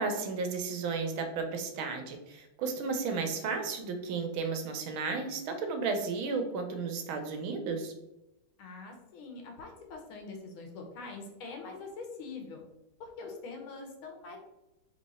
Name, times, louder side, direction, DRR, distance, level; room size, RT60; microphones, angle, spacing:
voice 1, 0.0-7.9, right 4 dB, 75° right, 5 dB, 1.5 m, -33 dB
voice 2, 8.6-12.6 13.0-14.4, left 4 dB, 75° left, 2 dB, 1.7 m, -44 dB
4.0 x 3.1 x 4.1 m, 0.93 s
omnidirectional pair, 2.3 m